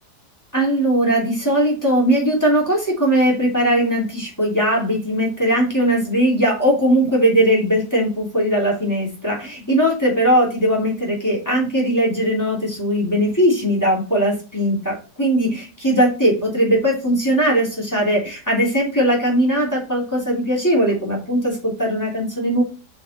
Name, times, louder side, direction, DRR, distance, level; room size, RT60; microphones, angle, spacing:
voice 1, 0.5-22.6, right 1 dB, 10° left, -3 dB, 3.1 m, -19 dB
6.5 x 5.9 x 4.3 m, 0.35 s
omnidirectional pair, 1.7 m